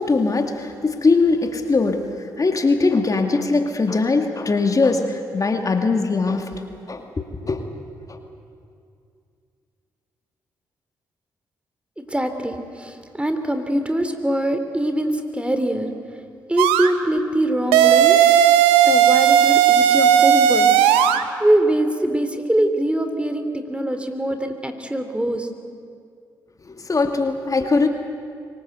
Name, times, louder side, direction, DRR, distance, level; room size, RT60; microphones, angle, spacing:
voice 1, 0.0-6.6 6.9-7.8 8.1-8.2 26.7-27.9, left 3 dB, 40° left, 5 dB, 2.2 m, -21 dB
voice 2, 12.0-15.9 16.5-18.2 18.9-20.7 21.0-21.1 21.4-25.5, right 1 dB, 10° right, 7 dB, 3.1 m, -23 dB
sound 1, 16.6-16.9 17.7-21.2, right 9 dB, 85° right, 0.9 m, -15 dB
24.5 x 19.5 x 8.1 m, 2.3 s
hypercardioid pair, 45°, 9 cm